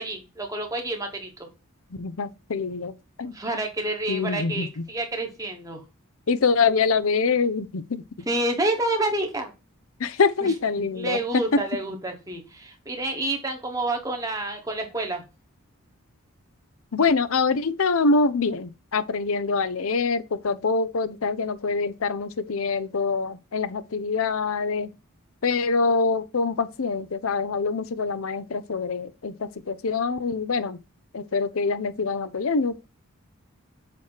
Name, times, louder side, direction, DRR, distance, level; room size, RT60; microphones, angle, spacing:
voice 1, 0.0-1.5 3.3-5.8 8.3-9.5 10.4-10.5 10.9-15.2, right 2 dB, 15° right, 1.4 m, -29 dB
voice 2, 2.0-3.4 4.1-4.8 6.3-8.0 10.0-11.6 16.9-24.9 25.4-30.8 31.1-32.8, left 4 dB, 70° left, 0.6 m, -25 dB
7.5 x 3.1 x 5.7 m
head